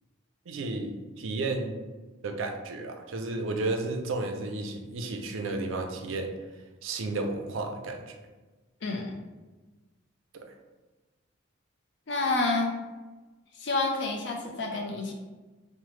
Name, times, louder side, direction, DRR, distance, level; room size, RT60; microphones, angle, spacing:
voice 1, 0.5-1.8 2.2-6.3 6.8-8.1, right 2 dB, 65° right, 4 dB, 0.4 m, -32 dB
voice 2, 12.1-12.7 13.6-15.1, left 3 dB, 55° left, 1 dB, 0.5 m, -28 dB
3.0 x 2.0 x 3.1 m, 1.2 s
head